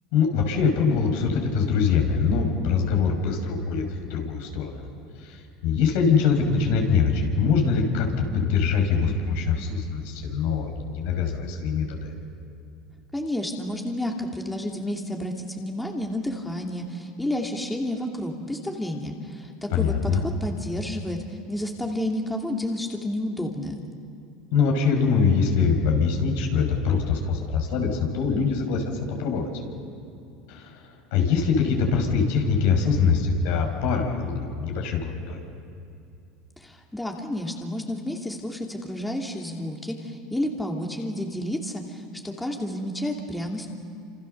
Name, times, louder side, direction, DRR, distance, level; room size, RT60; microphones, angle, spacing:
voice 1, 0.1-4.8 5.2-12.1 19.7-20.2 24.5-28.8 29.2-29.5 30.5-35.4, left 5 dB, 75° left, 2 dB, 5.7 m, -23 dB
voice 2, 13.1-23.8 36.6-43.7, left 1 dB, 5° left, 1 dB, 2.7 m, -30 dB
27.5 x 27.0 x 6.8 m, 2.6 s
supercardioid pair, 110°, 0 cm